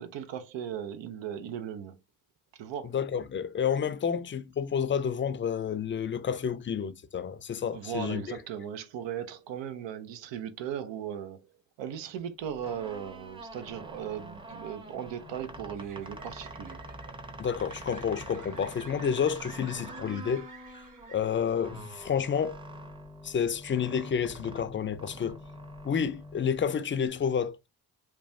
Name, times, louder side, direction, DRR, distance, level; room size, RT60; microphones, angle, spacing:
voice 1, 0.0-2.0 2.5-3.0 7.7-11.5 11.8-16.8, right 9 dB, 75° right, 0.6 m, -37 dB
voice 2, 2.9-8.2 17.4-20.5 21.1-22.6 23.2-25.4 25.8-27.7, left 7 dB, 25° left, 0.4 m, -30 dB
sound 1, 12.5-27.1, right 1 dB, 10° right, 0.7 m, -45 dB
sound 2, 14.1-21.7, right 3 dB, 45° right, 1.3 m, -52 dB
3.1 x 2.2 x 2.6 m
supercardioid pair, 50°, 44 cm